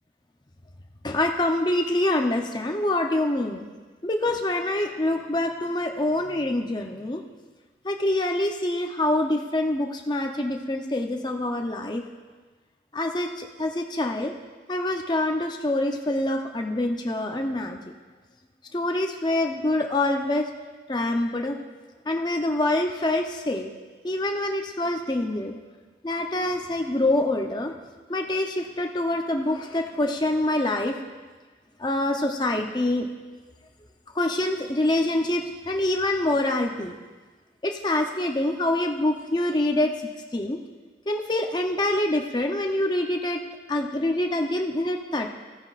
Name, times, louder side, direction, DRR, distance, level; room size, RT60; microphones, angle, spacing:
voice 1, 1.0-3.6 4.0-7.2 7.8-12.0 12.9-14.3 14.7-17.8 18.7-20.5 20.9-21.6 22.1-23.7 24.0-25.6 26.0-27.7 28.1-31.0 31.8-33.1 34.1-36.9 37.6-39.9 40.3-40.6 41.1-43.4 43.7-45.3, left 1 dB, 25° left, 3 dB, 0.6 m, -25 dB
15.0 x 9.3 x 2.5 m, 1.4 s
head